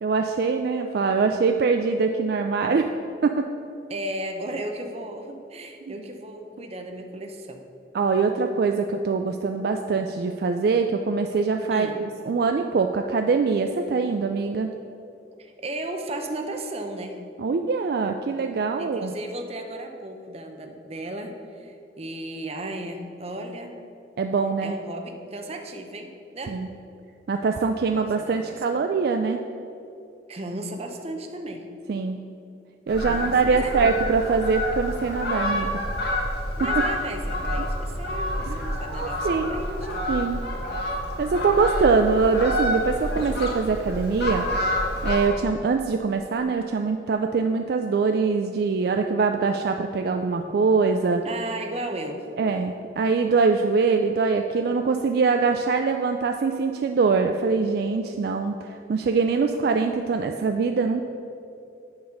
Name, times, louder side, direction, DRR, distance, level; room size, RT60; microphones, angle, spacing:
voice 1, 0.0-2.9 3.2-3.5 5.9-6.0 7.9-14.7 17.4-19.1 24.2-24.7 26.5-26.7 27.3-29.4 31.9-32.2 32.9-35.8 36.6-36.7 37.6-37.7 38.5-39.6 40.1-40.4 41.2-44.5 45.0-51.2 52.4-61.0, right 4 dB, 55° right, 5 dB, 0.3 m, -23 dB
voice 2, 3.9-7.6 11.7-12.0 15.4-17.2 18.8-23.8 24.6-26.6 27.9-28.9 30.3-31.7 33.0-34.0 36.6-40.1 51.2-52.3, right 1 dB, 35° right, 4 dB, 0.7 m, -35 dB
Fowl, 32.9-45.3, left 1 dB, 60° left, 1.4 m, -28 dB
9.5 x 4.1 x 6.4 m, 2.7 s
head